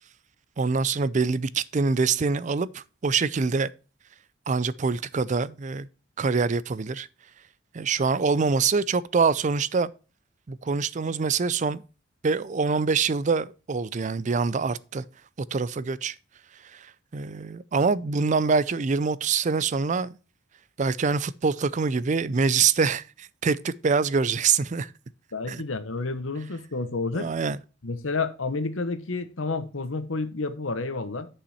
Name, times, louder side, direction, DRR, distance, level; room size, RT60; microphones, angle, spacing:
voice 1, 0.6-3.7 4.5-5.9 6.2-7.1 7.7-9.9 10.5-11.8 12.2-15.0 15.5-16.1 16.7-16.8 17.1-20.2 20.8-24.9 25.5-25.6 27.1-27.6, right 5 dB, 40° right, 0.4 m, -25 dB
voice 2, 25.3-27.3 27.8-31.3, left 3 dB, 90° left, 1.2 m, -30 dB
10.0 x 5.6 x 4.2 m
head